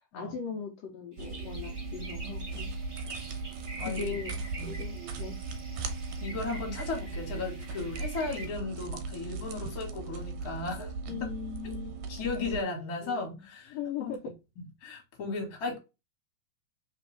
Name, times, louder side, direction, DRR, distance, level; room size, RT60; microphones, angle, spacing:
voice 1, 0.1-2.7 3.8-5.4 11.1-12.2 13.0-13.4 13.7-14.3, left 6 dB, 75° left, 1.6 m, -39 dB
sound 1, 1.1-8.4, right 2 dB, 20° right, 1.8 m, -46 dB
sound 2, 1.2-12.6, right 3 dB, 75° right, 1.8 m, -38 dB
voice 2, 3.8-4.2 4.6-4.8 6.2-10.9 11.6-11.7 12.1-14.1 14.8-15.8, left 3 dB, 40° left, 1.6 m, -36 dB
4.1 x 3.4 x 3.3 m
omnidirectional pair, 3.5 m